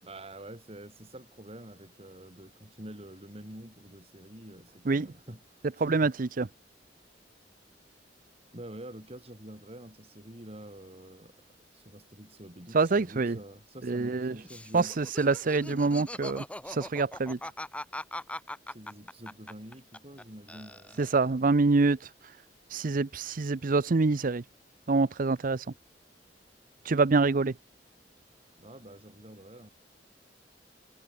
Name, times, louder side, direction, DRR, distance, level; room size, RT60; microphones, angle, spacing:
voice 1, 0.0-6.1 8.5-11.4 11.7-15.1 18.7-21.1 28.6-29.7, right 1 dB, 35° right, 5.5 m, -47 dB
voice 2, 5.8-6.5 12.7-13.4 13.8-14.3 14.7-17.4 21.0-22.1 22.7-24.4 24.9-25.7 26.8-27.5, right 3 dB, 50° right, 0.6 m, -26 dB
Laughter, 14.4-20.2 20.5-21.3, left 1 dB, 5° left, 2.4 m, -41 dB
head